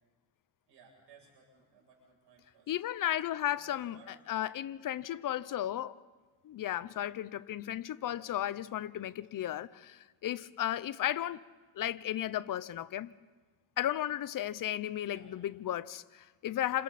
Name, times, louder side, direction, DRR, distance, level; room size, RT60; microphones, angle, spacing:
voice 1, 0.7-2.7 3.5-4.1 15.1-15.3, right 4 dB, 70° right, 7.8 m, -60 dB
voice 2, 2.7-4.0 4.3-6.0 6.4-11.4 11.8-13.1 13.8-16.8, left 12 dB, 45° left, 0.7 m, -34 dB
28.5 x 27.0 x 4.2 m
cardioid pair, 110°, 44 cm